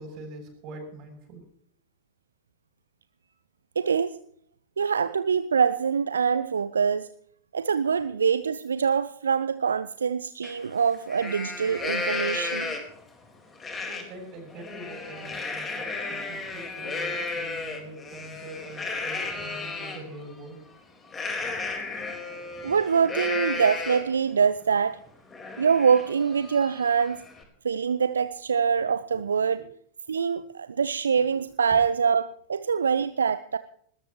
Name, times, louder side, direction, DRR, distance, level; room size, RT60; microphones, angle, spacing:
voice 1, 0.0-1.4 13.8-20.7 29.1-29.2 31.3-31.4, right 2 dB, 40° right, 3 dB, 7.3 m, -43 dB
voice 2, 3.8-4.2 4.8-7.1 7.5-12.8 22.6-25.0 25.6-27.2 27.6-29.7 30.1-33.6, right 6 dB, 70° right, 14 dB, 0.6 m, -24 dB
Livestock farm animals working animals, 10.4-10.5 10.9-13.0 13.6-14.0 14.4-20.0 21.1-24.2 24.6-24.7 25.1-27.4, left 3 dB, 20° left, 4.2 m, -33 dB
20.5 x 19.5 x 3.0 m, 0.62 s
figure-of-eight pair, 90°, 0 cm